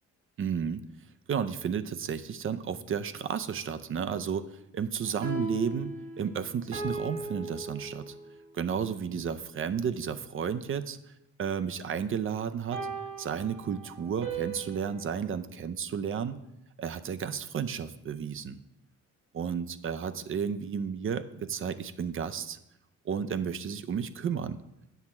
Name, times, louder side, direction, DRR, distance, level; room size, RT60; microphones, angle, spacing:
voice 1, 0.4-0.8 1.3-5.9 6.2-8.1 8.5-11.0 11.4-12.8 13.2-16.4 16.8-18.6 19.3-22.6 23.0-24.6, right 7 dB, 45° right, 12 dB, 0.5 m, -32 dB
sound 1, 5.0-8.5 12.7-15.2, right 3 dB, 80° right, 1.7 m, -38 dB
8.1 x 6.0 x 4.3 m, 0.84 s
cardioid pair, 90°, 30 cm